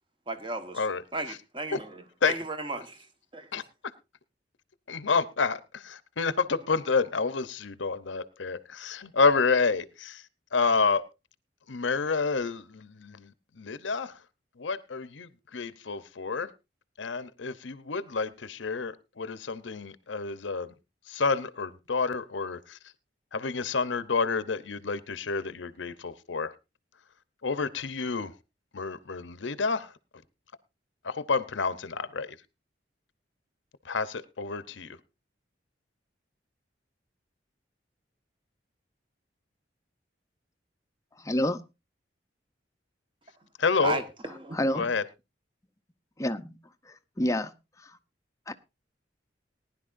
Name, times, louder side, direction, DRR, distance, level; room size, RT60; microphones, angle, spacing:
voice 1, 0.3-0.8 1.1-3.1 3.3-3.5 43.8-44.6, right 2 dB, 25° right, 1.3 m, -35 dB
voice 2, 4.9-10.2 10.5-11.0 11.7-14.2 14.6-16.5 17.0-20.7 21.1-22.8 23.3-26.5 27.4-28.3 28.7-29.9 31.0-32.4 33.8-35.0 43.6-44.0 44.7-45.0, left 4 dB, 85° left, 0.8 m, -29 dB
voice 3, 41.2-41.6 44.5-44.9 46.2-46.5 46.9-47.5 47.8-47.9 48.5-48.6, left 1 dB, 15° left, 0.6 m, -28 dB
19.5 x 11.0 x 2.6 m
head